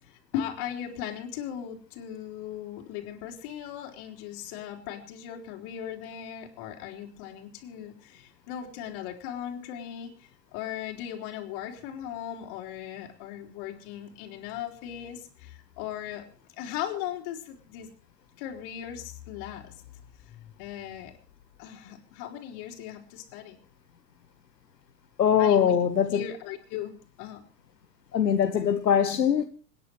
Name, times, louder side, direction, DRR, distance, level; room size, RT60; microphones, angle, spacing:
voice 1, 0.0-16.2 16.6-17.9 18.4-19.8 20.3-21.1 21.6-23.6 25.4-25.8 26.1-27.4, left 10 dB, 55° left, 4.3 m, -38 dB
voice 2, 25.2-26.2 28.1-29.5, left 8 dB, 90° left, 1.4 m, -22 dB
26.5 x 10.5 x 4.7 m
hypercardioid pair, 95°, 48 cm